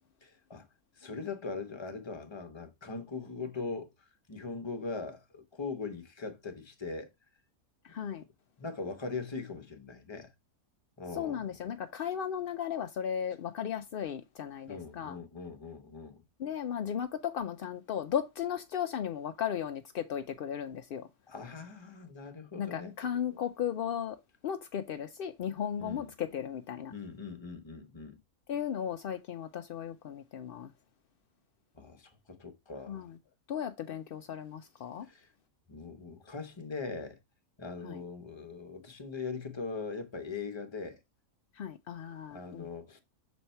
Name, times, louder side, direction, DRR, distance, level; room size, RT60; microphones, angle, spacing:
voice 1, 0.2-0.7 1.0-3.9 4.3-7.1 8.6-10.3 11.0-11.4 14.7-16.2 21.3-22.9 25.8-26.1 26.9-28.2 31.7-33.0 35.1-35.3 35.7-37.2 37.6-41.0 42.3-43.0, left 4 dB, 25° left, 0.8 m, -40 dB
voice 2, 7.8-8.2 11.1-15.2 16.4-21.1 22.6-26.9 28.5-30.7 32.9-33.2 33.5-35.1 37.8-38.0 41.5-42.7, left 9 dB, 75° left, 0.5 m, -36 dB
6.3 x 4.1 x 4.4 m
omnidirectional pair, 1.5 m